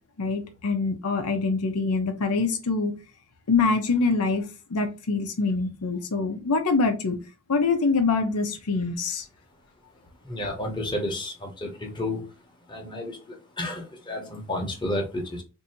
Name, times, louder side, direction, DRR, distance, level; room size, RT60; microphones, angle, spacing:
voice 1, 0.2-2.9 3.5-7.2 7.5-9.2, left 4 dB, 75° left, 0.6 m, -25 dB
voice 2, 10.2-12.2 12.7-15.4, left 1 dB, 20° left, 0.9 m, -31 dB
2.7 x 2.6 x 4.2 m
head